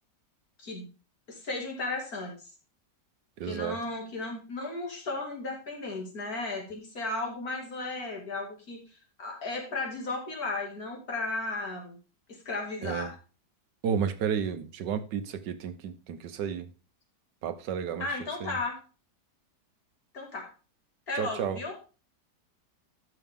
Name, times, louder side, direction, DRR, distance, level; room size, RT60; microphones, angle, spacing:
voice 1, 1.3-2.4 3.4-12.0 12.3-13.2 18.0-18.8 20.1-20.5 21.1-21.8, left 2 dB, 60° left, 2.9 m, -35 dB
voice 2, 3.4-3.8 12.8-13.1 13.8-16.7 17.4-18.1 18.4-18.6 21.2-21.6, right 7 dB, 90° right, 1.6 m, -32 dB
12.5 x 6.1 x 3.7 m
omnidirectional pair, 1.8 m